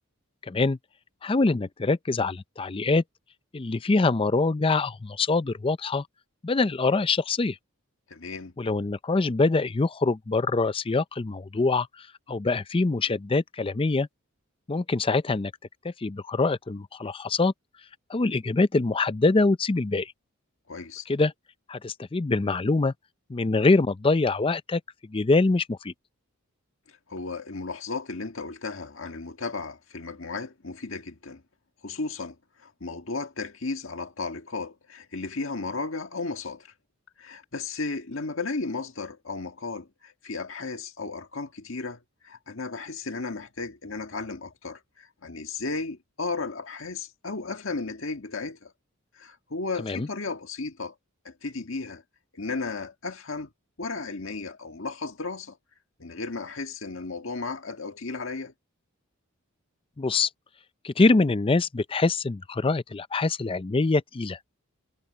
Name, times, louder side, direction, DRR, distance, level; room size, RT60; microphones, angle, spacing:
voice 1, 0.5-0.8 1.2-3.0 3.5-6.0 6.4-7.6 8.6-11.9 12.3-14.1 14.7-15.5 15.8-17.5 18.1-20.1 21.1-21.3 21.7-22.9 23.3-24.8 25.1-25.9 49.8-50.1 60.0-60.3 60.8-64.4, left 3 dB, 25° left, 0.5 m, -24 dB
voice 2, 8.1-8.5 20.7-21.1 26.9-31.4 31.8-36.7 37.2-48.7 49.2-51.0 51.3-52.0 52.3-53.5 53.8-55.6 56.0-58.5, left 3 dB, 65° left, 1.8 m, -34 dB
head